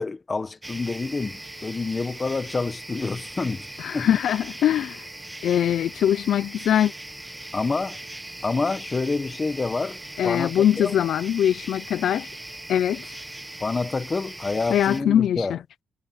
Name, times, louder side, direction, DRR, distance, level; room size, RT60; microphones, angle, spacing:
voice 1, 0.0-3.7 3.9-4.1 7.5-8.0 8.4-10.0 10.2-11.0 13.6-15.6, left 3 dB, 25° left, 1.1 m, -27 dB
sound 1, 0.6-15.0, right 1 dB, 10° right, 1.3 m, -39 dB
voice 2, 3.8-5.0 5.4-6.9 10.2-12.3 12.7-13.0 14.7-15.6, left 10 dB, 75° left, 0.5 m, -22 dB
cardioid pair, 145°, 0 cm